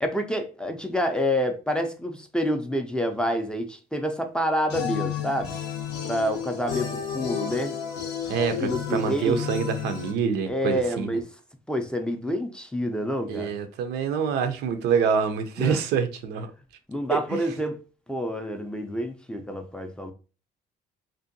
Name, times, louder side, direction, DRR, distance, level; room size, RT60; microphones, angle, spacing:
voice 1, 0.0-5.5 6.0-7.8 8.6-9.4 10.5-11.3 11.7-13.5 15.6-15.8 16.9-17.8 18.1-20.1, equal, 5° left, 0.3 m, -28 dB
sound 1, 4.7-10.1, left 8 dB, 90° left, 0.6 m, -32 dB
voice 2, 8.3-11.2 13.3-16.5 17.1-17.4, right 6 dB, 80° right, 0.4 m, -26 dB
2.6 x 2.2 x 2.5 m
cardioid pair, 110°, 17 cm